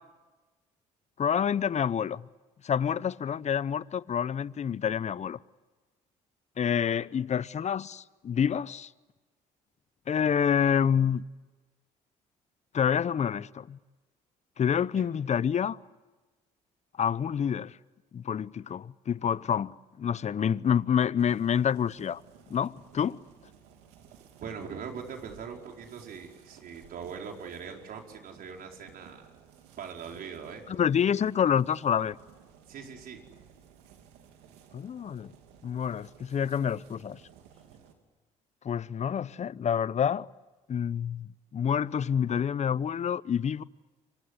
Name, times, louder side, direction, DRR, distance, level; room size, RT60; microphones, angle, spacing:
voice 1, 1.2-2.3 2.6-5.4 6.6-8.9 10.1-11.2 12.7-13.8 14.6-15.8 17.0-17.8 18.1-22.2 22.5-23.2 30.7-32.2 34.7-35.3 35.6-37.2 38.6-40.3 40.7-43.6, left 8 dB, 45° left, 0.8 m, -28 dB
sound 1, 21.2-37.9, right 8 dB, 85° right, 3.2 m, -56 dB
voice 2, 24.4-29.3 29.8-30.6 32.7-33.2, right 6 dB, 65° right, 4.9 m, -41 dB
28.5 x 25.0 x 8.3 m
hypercardioid pair, 60°, 17 cm